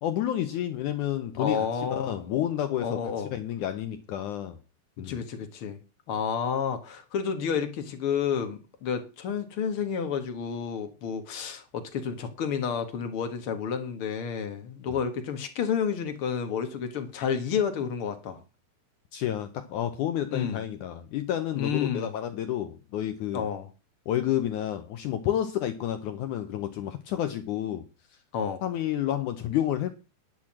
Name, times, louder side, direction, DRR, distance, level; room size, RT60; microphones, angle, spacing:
voice 1, 0.0-3.0 3.2-4.6 5.0-5.2 19.1-23.5 24.1-27.8 28.6-29.9, left 11 dB, 85° left, 9 dB, 1.7 m, -30 dB
voice 2, 1.4-2.2 2.8-3.3 5.0-5.8 6.1-18.4 20.3-20.6 21.5-22.1 23.3-23.7 28.3-28.6, left 7 dB, 55° left, 7 dB, 1.6 m, -30 dB
10.5 x 6.2 x 7.4 m, 0.30 s
omnidirectional pair, 4.7 m